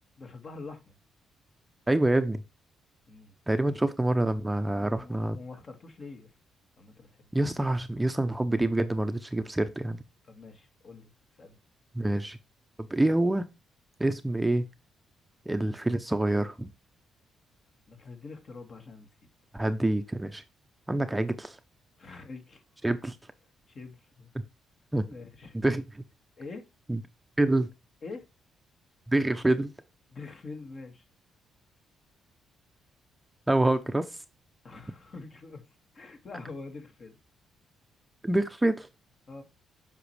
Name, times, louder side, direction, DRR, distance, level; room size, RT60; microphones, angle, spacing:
voice 1, 0.2-0.9 3.1-3.3 4.7-6.3 6.8-7.2 10.2-11.1 11.4-11.6 17.9-19.1 22.0-22.6 23.7-24.3 25.1-25.6 26.4-26.7 28.0-28.3 30.1-31.1 34.6-35.6 35.9-37.2 39.3-39.4, left 3 dB, 45° left, 2.1 m, -45 dB
voice 2, 1.9-2.4 3.5-5.4 7.3-10.0 11.9-12.4 12.8-13.4 14.0-14.7 15.5-16.7 19.5-20.4 20.9-21.6 22.8-23.2 24.9-25.1 25.6-26.0 26.9-27.0 27.4-27.7 29.1-29.7 33.5-34.2 38.2-38.9, right 1 dB, 10° right, 0.7 m, -26 dB
7.9 x 5.9 x 3.3 m
cardioid pair, 90°, 0 cm